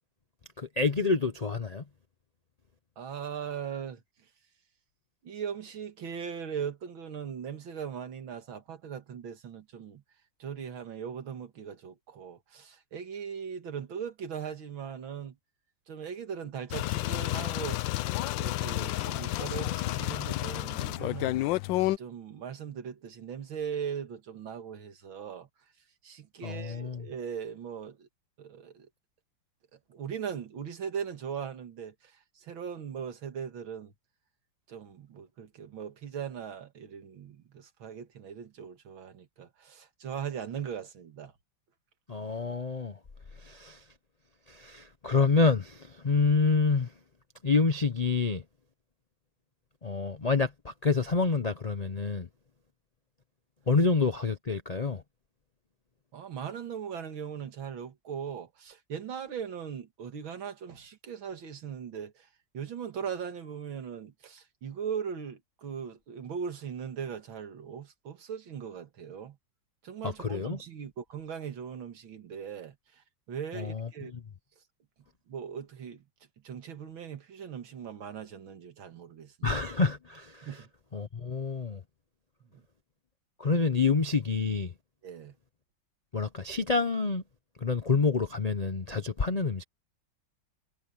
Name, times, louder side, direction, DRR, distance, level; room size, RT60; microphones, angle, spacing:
voice 1, 0.6-1.8 26.4-27.1 42.1-43.0 43.4-43.8 44.5-46.9 47.4-48.4 49.8-52.3 53.7-55.0 70.0-70.6 73.5-74.2 79.4-80.6 80.9-81.8 83.4-84.7 86.1-87.2 87.6-89.6, left 4 dB, 60° left, 0.4 m, -28 dB
voice 2, 3.0-4.0 5.2-10.0 10.4-15.4 15.9-17.8 18.4-21.4 22.0-25.5 26.0-28.1 28.4-28.9 29.9-31.9 32.4-33.9 34.7-41.3 56.1-62.1 62.5-69.4 69.8-72.7 73.3-74.1 75.3-76.0 76.4-79.5 80.4-80.7 85.0-85.3, right 7 dB, 90° right, 2.6 m, -39 dB
sound 1, 16.7-22.0, left 17 dB, 75° left, 1.2 m, -30 dB
omnidirectional pair, 2.1 m